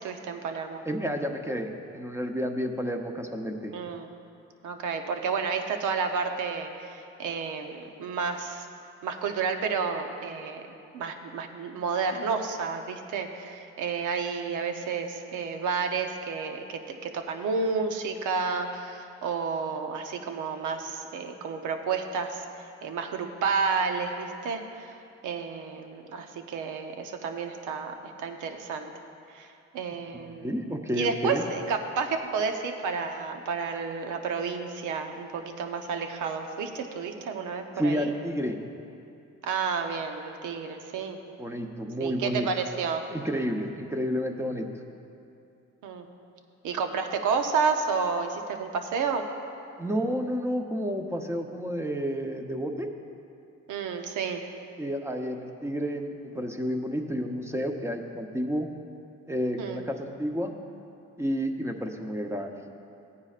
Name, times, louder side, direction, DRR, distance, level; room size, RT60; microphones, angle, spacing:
voice 1, 0.0-0.8 3.7-4.1 4.6-8.7 9.0-10.6 10.9-22.4 22.8-25.0 25.2-28.9 29.3-29.5 29.7-38.1 39.4-41.2 42.0-43.0 45.8-46.1 46.6-49.3 53.7-54.4 59.6-59.8, right 5 dB, 80° right, 5 dB, 0.9 m, -31 dB
voice 2, 0.9-3.7 30.4-31.4 37.8-38.6 41.4-42.5 43.1-44.7 49.8-52.9 54.8-58.7 59.3-60.5 61.2-62.5, equal, 10° right, 4 dB, 0.8 m, -30 dB
16.0 x 9.6 x 2.5 m, 2.6 s
cardioid pair, 90°, 30 cm